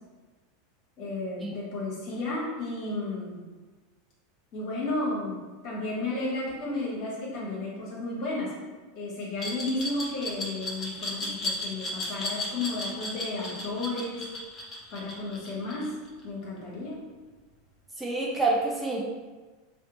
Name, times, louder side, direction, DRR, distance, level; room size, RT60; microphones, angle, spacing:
voice 1, 1.0-3.4 4.5-8.5 8.9-14.2 14.9-15.9 16.2-17.0, left 2 dB, 45° left, -5 dB, 1.1 m, -33 dB
Glass, 9.4-16.2, left 1 dB, 30° left, 0.8 m, -34 dB
voice 2, 18.0-19.0, right 3 dB, 10° right, -3 dB, 0.4 m, -27 dB
2.7 x 2.1 x 3.9 m, 1.3 s
figure-of-eight pair, 85°, 0 cm